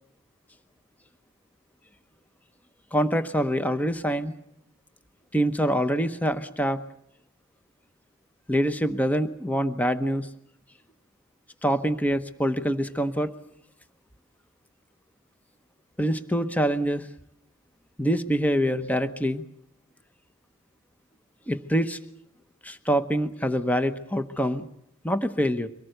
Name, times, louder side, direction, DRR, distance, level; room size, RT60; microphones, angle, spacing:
voice 1, 2.9-4.3 5.3-6.8 8.5-10.3 11.6-13.3 16.0-17.1 18.0-19.4 21.5-22.0 22.6-24.7 25.0-25.7, equal, 5° left, 10 dB, 0.9 m, -25 dB
24.0 x 18.5 x 7.9 m, 0.76 s
head